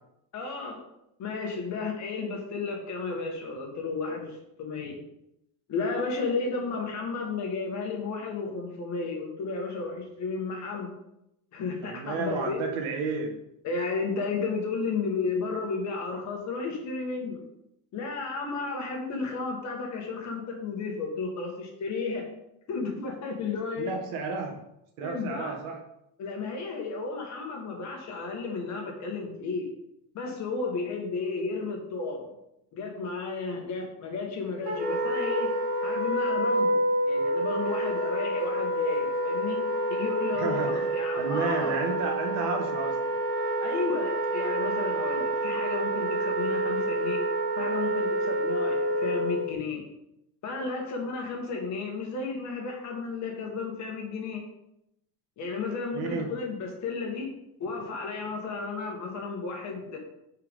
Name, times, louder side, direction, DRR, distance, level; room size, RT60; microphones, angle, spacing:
voice 1, 0.3-0.8 1.2-5.0 5.7-10.9 11.5-12.6 13.6-17.4 17.9-22.3 22.7-23.9 25.0-25.6 26.2-29.7 30.1-32.3 32.7-35.5 35.8-36.8 37.1-39.6 39.9-41.8 43.6-47.2 47.6-49.8 50.4-54.4 55.4-57.3 57.6-60.0, left 4 dB, 35° left, 1 dB, 1.7 m, -33 dB
voice 2, 11.8-13.3 23.8-24.6 25.0-25.8 40.3-40.8 41.2-43.0 55.9-56.3, right 4 dB, 65° right, 2 dB, 1.8 m, -31 dB
Wind instrument woodwind instrument, 34.7-49.5, right 1 dB, 45° right, 2.9 m, -28 dB
10.0 x 4.9 x 3.7 m, 0.82 s
cardioid pair, 170°, 47 cm